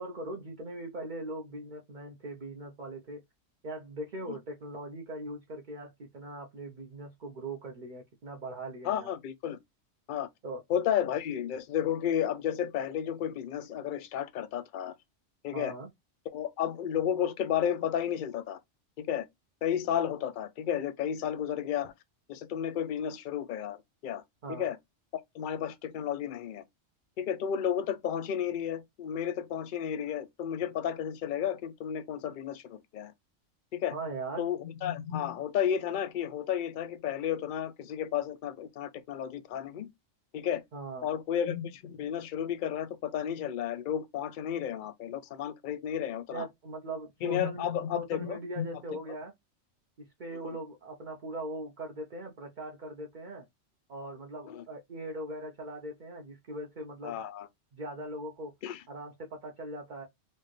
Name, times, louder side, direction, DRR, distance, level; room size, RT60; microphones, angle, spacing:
voice 1, 0.0-3.2 3.6-9.1 10.4-10.6 15.5-15.9 24.4-24.7 33.9-34.5 40.7-41.1 46.3-49.3 50.0-53.5 53.9-57.2 57.7-58.5 58.9-60.1, right 1 dB, 45° right, 0.8 m, -40 dB
voice 2, 8.8-9.6 10.1-10.3 10.7-14.9 15.4-15.7 16.3-18.6 19.0-19.3 19.6-21.9 22.3-23.8 24.0-24.2 24.5-24.8 25.3-26.6 27.2-33.1 33.7-33.9 34.4-39.9 40.3-40.6 41.0-46.5 47.2-48.7 54.5-54.6 57.0-57.5 58.6-58.8, left 9 dB, 60° left, 0.5 m, -32 dB
4.3 x 2.4 x 3.1 m
omnidirectional pair, 1.3 m